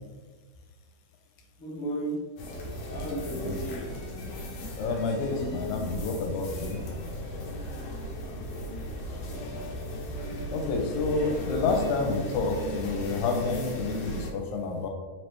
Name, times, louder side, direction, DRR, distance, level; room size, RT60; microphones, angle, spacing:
voice 1, 1.6-2.3 2.9-4.0 8.2-9.4, right 1 dB, 55° left, -7 dB, 0.8 m, -36 dB
sound 1, 2.4-14.3, equal, 70° left, 1.6 m, -36 dB
voice 2, 4.8-6.8 10.5-14.9, left 4 dB, 85° left, 3 dB, 2.0 m, -29 dB
4.6 x 3.0 x 3.2 m, 1.4 s
omnidirectional pair, 3.4 m